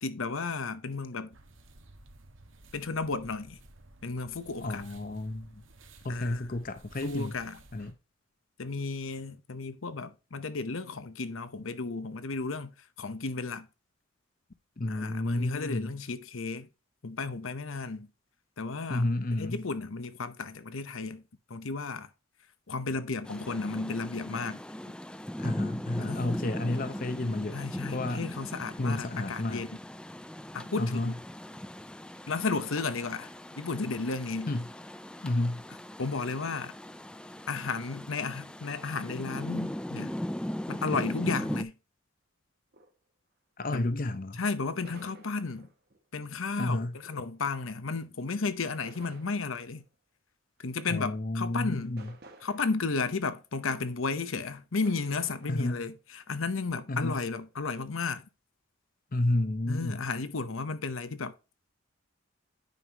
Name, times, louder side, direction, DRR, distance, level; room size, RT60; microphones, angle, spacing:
voice 1, 0.0-1.3 2.7-3.6 4.0-4.8 6.1-6.5 7.0-7.6 8.6-13.7 14.9-16.7 17.0-18.1 18.6-19.1 19.4-21.2 21.5-22.1 22.7-24.6 26.1-26.4 27.5-29.7 30.5-31.1 32.3-34.5 36.0-36.7 37.5-40.2 40.7-41.7 43.7-43.9 44.4-45.7 46.1-49.9 50.6-52.0 52.4-58.3 59.7-61.3, left 4 dB, 75° left, 0.9 m, -33 dB
sound 1, 1.3-7.9, right 2 dB, 70° right, 1.6 m, -54 dB
voice 2, 4.6-5.6 6.0-7.4 7.7-7.9 14.8-16.0 18.9-19.6 25.4-27.6 27.9-28.3 28.8-29.7 30.8-31.2 34.5-34.7 35.2-35.6 43.6-44.4 46.6-47.0 50.9-52.1 55.5-55.8 56.9-57.2 59.1-60.0, left 1 dB, 40° left, 0.7 m, -31 dB
Rain, 23.2-41.6, equal, 5° left, 0.3 m, -39 dB
sound 2, 42.7-42.9 44.8-46.0 47.0-47.5 48.8-49.9 51.0-51.1 51.5-53.1 53.7-53.8 54.8-55.9 56.7-57.5, right 2 dB, 50° right, 1.5 m, -55 dB
9.3 x 5.6 x 2.9 m
head